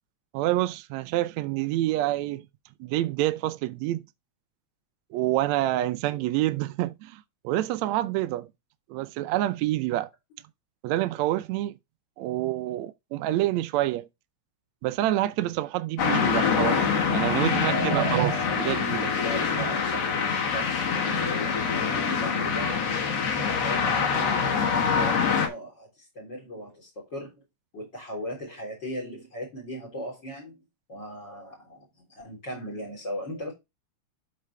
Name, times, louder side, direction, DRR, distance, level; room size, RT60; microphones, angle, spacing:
voice 1, 0.3-2.4 2.8-4.0 5.1-8.5 8.9-10.1 10.8-11.8 12.2-14.1 14.8-16.9 17.1-19.1 19.6-19.7, right 15 dB, 75° right, 1.9 m, -27 dB
sound 1, 16.0-25.5, left 6 dB, 60° left, 2.6 m, -25 dB
voice 2, 17.5-18.1 19.2-23.0 23.4-27.4 27.7-30.6 30.9-33.5, equal, 35° left, 4.4 m, -38 dB
13.0 x 4.4 x 3.3 m
omnidirectional pair, 3.4 m